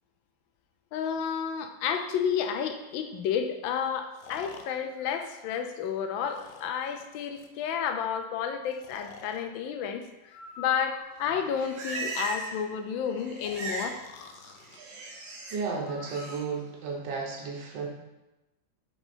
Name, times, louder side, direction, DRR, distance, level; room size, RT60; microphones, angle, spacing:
voice 1, 0.9-14.0, left 7 dB, 90° left, 7 dB, 1.4 m, -31 dB
Breathing, 2.2-2.3 4.1-5.8 6.3-7.6 8.7-9.5 10.3-11.4 13.4-14.8 15.9-16.4, left 5 dB, 75° left, 1.0 m, -48 dB
Livestock farm animals working animals, 11.2-12.7 12.9-14.0 14.3-15.6 16.0-16.4, right 2 dB, 85° right, 1.8 m, -38 dB
voice 2, 15.5-17.9, right 4 dB, 70° right, 0 dB, 1.6 m, -33 dB
5.1 x 4.4 x 4.3 m, 0.99 s
omnidirectional pair, 2.1 m